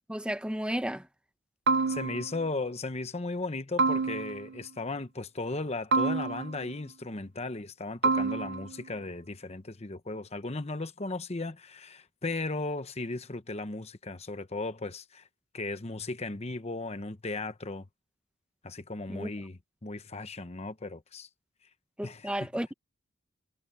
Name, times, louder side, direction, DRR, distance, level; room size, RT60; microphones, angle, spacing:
voice 1, 0.1-1.0 19.1-19.3 22.0-22.7, equal, 5° right, 0.9 m, -33 dB
sound 1, 1.7-2.5 3.8-4.6 5.9-6.7 8.0-8.8, right 4 dB, 55° right, 0.7 m, -28 dB
voice 2, 1.9-15.2 15.5-17.9 18.6-21.3 22.0-22.5, left 2 dB, 30° left, 1.0 m, -36 dB
head